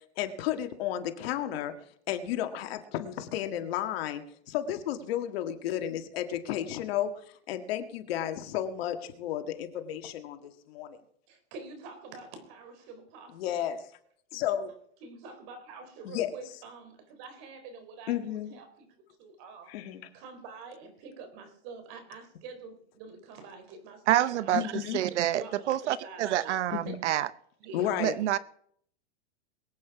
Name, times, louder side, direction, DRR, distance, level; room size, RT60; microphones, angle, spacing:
voice 1, 0.2-1.7 2.1-7.1 7.5-11.0 13.3-13.9 14.3-14.7 16.0-16.3 18.1-18.5 19.7-20.1 24.5-25.0 26.7-27.0 27.7-28.2, left 11 dB, 60° left, 7 dB, 1.9 m, -32 dB
voice 2, 11.3-13.6 15.0-18.9 19.2-19.7 20.1-24.8 25.3-26.6 26.8-26.9 27.6-27.9, right 4 dB, 45° right, 8 dB, 4.0 m, -46 dB
voice 3, 24.1-27.3 28.0-28.4, right 12 dB, 80° right, 17 dB, 0.8 m, -27 dB
22.5 x 8.8 x 4.8 m, 0.64 s
supercardioid pair, 150°, 34 cm